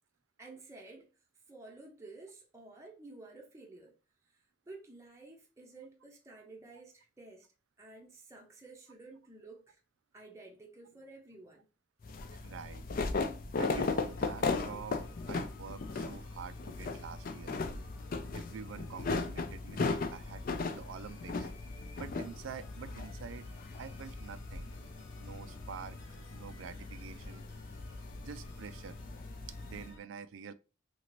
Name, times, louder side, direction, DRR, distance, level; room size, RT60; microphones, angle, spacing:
voice 1, 0.4-1.1 1.5-4.0 4.3-4.4 4.7-7.5 7.8-9.8 10.1-11.6, right 3 dB, 15° right, 0.6 m, -52 dB
sound 1, 12.0-29.9, left 3 dB, 50° left, 0.4 m, -37 dB
voice 2, 12.3-12.9 13.6-17.6 18.1-21.5 22.0-23.5 23.8-24.7 25.2-27.5 28.2-29.0 29.6-30.5, right 6 dB, 85° right, 0.4 m, -47 dB
sound 2, 14.0-30.0, left 2 dB, 75° left, 0.8 m, -56 dB
2.9 x 2.8 x 2.9 m
head